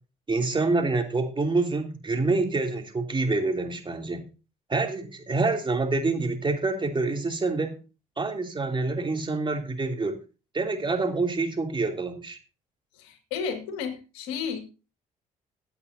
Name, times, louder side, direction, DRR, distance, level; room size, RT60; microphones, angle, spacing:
voice 1, 0.3-4.2 4.7-7.8 8.2-10.2 10.5-12.4, right 3 dB, 30° right, 2.9 m, -27 dB
voice 2, 12.9-14.6, left 6 dB, 85° left, 2.0 m, -32 dB
16.5 x 8.3 x 2.7 m
hypercardioid pair, 60°, 17 cm